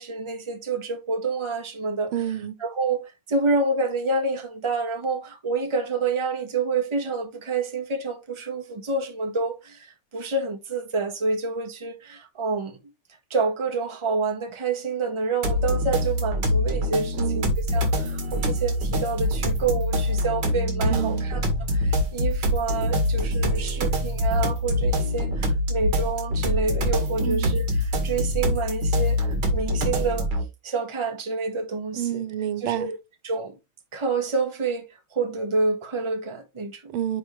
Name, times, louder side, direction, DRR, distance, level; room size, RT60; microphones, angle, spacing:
voice 1, 0.0-2.1 2.6-12.8 13.3-21.4 21.7-30.3 30.6-32.2 32.6-33.0 33.2-33.5 33.9-34.8 35.1-36.9, right 3 dB, 15° right, 1.1 m, -28 dB
voice 2, 2.1-2.6 17.1-17.5 20.9-21.3 27.2-27.6 31.9-32.9 36.9-37.2, right 11 dB, 90° right, 1.7 m, -29 dB
sound 1, 15.4-30.4, equal, 55° right, 2.5 m, -24 dB
10.0 x 3.8 x 3.2 m
omnidirectional pair, 2.3 m